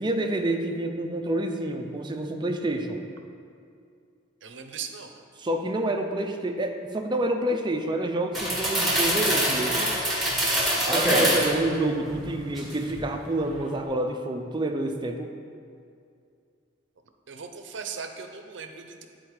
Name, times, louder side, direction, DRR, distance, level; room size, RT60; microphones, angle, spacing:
voice 1, 0.0-3.0 5.4-10.0 10.7-15.3, right 1 dB, 25° right, 4 dB, 0.5 m, -28 dB
voice 2, 4.4-5.1 17.3-19.1, right 6 dB, 65° right, 5 dB, 0.6 m, -38 dB
sound 1, 8.3-11.6 12.1-13.0 13.3-13.6, right 1 dB, ahead, 1.6 m, -24 dB
9.6 x 4.2 x 4.8 m, 2.4 s
head